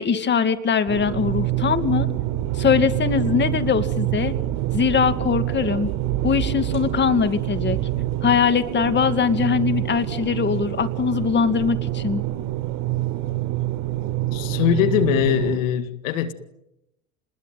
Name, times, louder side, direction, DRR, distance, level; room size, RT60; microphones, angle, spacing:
voice 1, 0.0-2.1 2.5-4.4 4.7-5.9 6.2-7.8 8.2-12.2, left 6 dB, 25° left, 2.4 m, -21 dB
sound 1, 0.9-15.6, right 14 dB, 55° right, 6.9 m, -26 dB
voice 2, 14.3-16.3, left 10 dB, 70° left, 2.0 m, -21 dB
29.5 x 21.0 x 9.3 m
hypercardioid pair, 90°, 41 cm